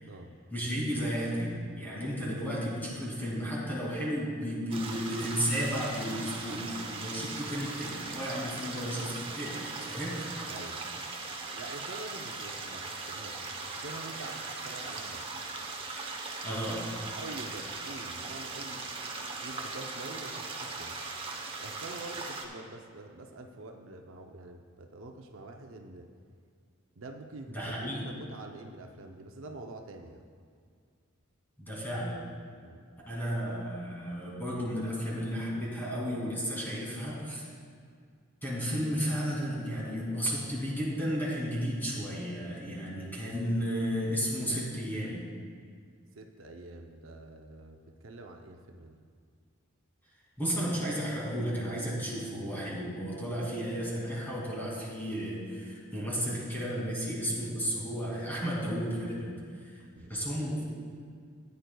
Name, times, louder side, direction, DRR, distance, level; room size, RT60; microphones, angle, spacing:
voice 1, 0.5-10.3 16.4-16.8 27.5-28.0 31.6-32.2 33.1-37.5 38.4-45.2 50.4-59.8 60.1-60.6, equal, 10° left, -5 dB, 2.4 m, -33 dB
sound 1, 4.7-22.5, right 3 dB, 25° right, 0.8 m, -39 dB
voice 2, 10.5-10.8 11.6-15.3 17.2-21.0 21.6-26.1 27.0-30.2 32.6-32.8 46.1-49.0 59.8-60.4, right 2 dB, 65° right, 3 dB, 0.6 m, -46 dB
14.5 x 9.3 x 2.3 m, 2.1 s
head